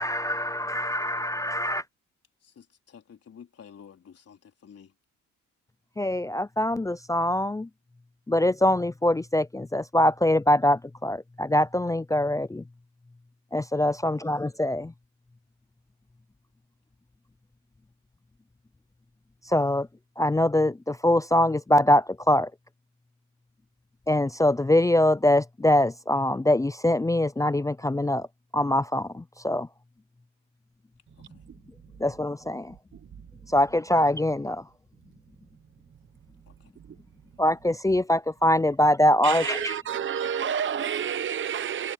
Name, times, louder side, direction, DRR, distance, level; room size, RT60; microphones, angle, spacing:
voice 1, 0.0-1.9 6.0-7.7 8.3-12.7 13.5-14.9 19.4-19.9 20.2-22.5 24.1-28.3 28.5-29.7 31.6-32.8 33.4-34.7 37.4-39.8, left 1 dB, 10° left, 0.5 m, -23 dB
voice 2, 2.4-4.9 31.2-31.4 36.5-36.7, left 7 dB, 50° left, 4.1 m, -51 dB
voice 3, 39.2-41.9, right 8 dB, 40° right, 0.8 m, -29 dB
cardioid pair, 90°, 30 cm